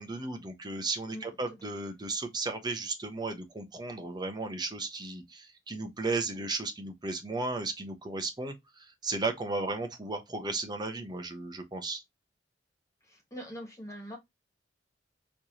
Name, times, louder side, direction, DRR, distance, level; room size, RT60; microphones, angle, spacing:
voice 1, 0.0-12.0, right 3 dB, 25° right, 0.9 m, -35 dB
voice 2, 13.0-14.2, equal, 15° left, 1.8 m, -43 dB
4.4 x 3.2 x 2.8 m
head